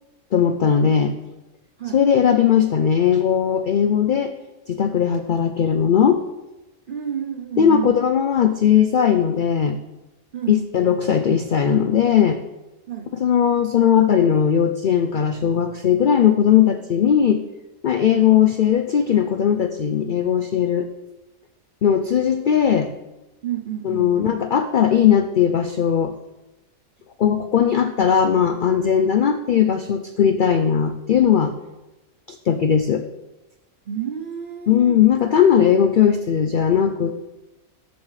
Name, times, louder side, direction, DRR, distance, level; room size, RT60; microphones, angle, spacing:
voice 1, 0.3-1.2 1.9-4.3 4.7-6.2 7.6-9.8 10.5-12.4 13.2-17.4 17.8-20.9 21.8-22.9 23.8-26.1 27.2-31.5 32.3-33.0 34.7-37.2, left 8 dB, 85° left, 8 dB, 0.4 m, -18 dB
voice 2, 6.9-8.0 10.3-10.6 12.9-13.1 23.4-24.3 33.9-35.0, right 9 dB, 60° right, 4 dB, 0.5 m, -30 dB
13.5 x 7.2 x 3.2 m, 1.0 s
omnidirectional pair, 1.5 m